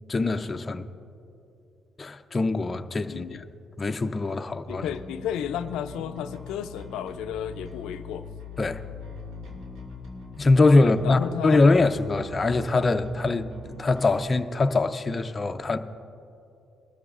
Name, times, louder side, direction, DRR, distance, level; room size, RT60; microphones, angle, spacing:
voice 1, 0.1-0.9 2.0-3.4 3.8-4.8 8.6-8.8 10.4-13.5 13.8-15.8, left 3 dB, 30° left, 0.5 m, -22 dB
voice 2, 3.1-3.4 4.7-8.3 10.8-11.7, left 9 dB, 90° left, 0.4 m, -33 dB
Bass guitar, 4.7-14.3, left 2 dB, 90° right, 2.1 m, -42 dB
21.5 x 13.0 x 2.5 m
cardioid pair, 90°, 0 cm